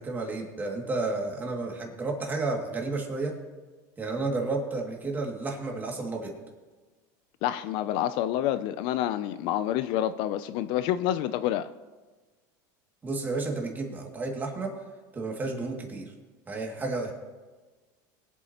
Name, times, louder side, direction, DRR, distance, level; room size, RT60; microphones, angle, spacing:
voice 1, 0.0-3.3 4.0-6.3 13.0-14.7 15.1-16.1 16.5-17.1, right 3 dB, 20° right, 2.3 m, -31 dB
voice 2, 7.4-11.7, left 12 dB, 55° left, 0.4 m, -28 dB
22.0 x 8.1 x 2.9 m
supercardioid pair, 130°, 10 cm